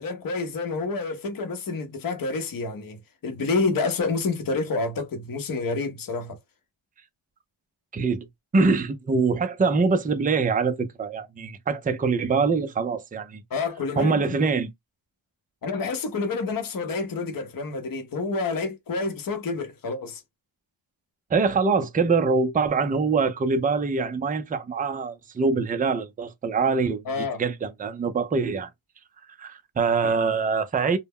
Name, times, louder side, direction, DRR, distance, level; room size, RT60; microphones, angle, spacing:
voice 1, 0.0-6.4 13.5-14.5 15.6-20.2 27.1-27.4 30.0-30.2, left 3 dB, 45° left, 0.7 m, -28 dB
voice 2, 7.9-8.3 8.5-13.4 14.0-14.7 21.3-28.7 29.4-31.0, right 4 dB, 20° right, 0.4 m, -24 dB
2.2 x 2.0 x 3.4 m
cardioid pair, 75°, 48 cm